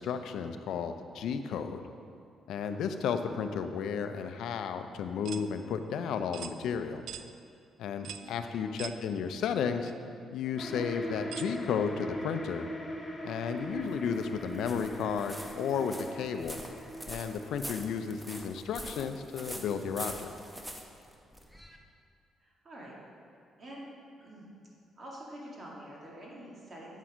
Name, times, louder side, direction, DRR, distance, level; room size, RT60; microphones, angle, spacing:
voice 1, 0.0-1.8 2.5-7.0 7.8-9.9 10.3-12.7 13.2-16.6 17.1-20.3, left 6 dB, 80° left, 8 dB, 0.5 m, -33 dB
sound 1, 5.2-5.5 6.3-6.6 7.1-7.3 8.0-8.3 8.8-9.0 9.8-9.9 11.3-11.5, right 9 dB, 80° right, 0.3 m, -42 dB
voice 2, 8.2-8.6 22.4-23.0 23.6-23.9 24.2-24.5 25.0-27.0, right 1 dB, 40° right, -4 dB, 2.1 m, -47 dB
sound 2, 10.6-18.8, equal, 20° left, 1.1 m, -41 dB
sound 3, 13.6-21.8, equal, 5° right, 0.8 m, -45 dB
8.2 x 6.0 x 4.9 m, 2.4 s
cardioid pair, 90°, 0 cm